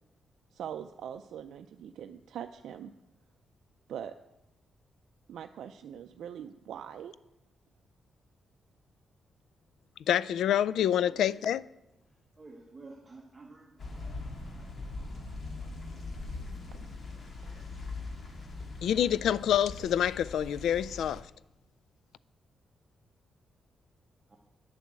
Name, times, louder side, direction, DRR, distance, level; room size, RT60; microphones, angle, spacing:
voice 1, 0.5-2.9 3.9-4.1 5.3-7.1, right 9 dB, 80° right, 0.4 m, -42 dB
voice 2, 10.1-11.6 18.8-21.3, left 10 dB, 85° left, 0.3 m, -27 dB
voice 3, 12.4-13.7 14.0-14.1 17.1-17.7 24.3-24.4, right 3 dB, 20° right, 1.2 m, -51 dB
sound 1, 13.8-21.2, left 3 dB, 45° left, 1.8 m, -41 dB
9.7 x 6.9 x 7.5 m
cardioid pair, 125°, 0 cm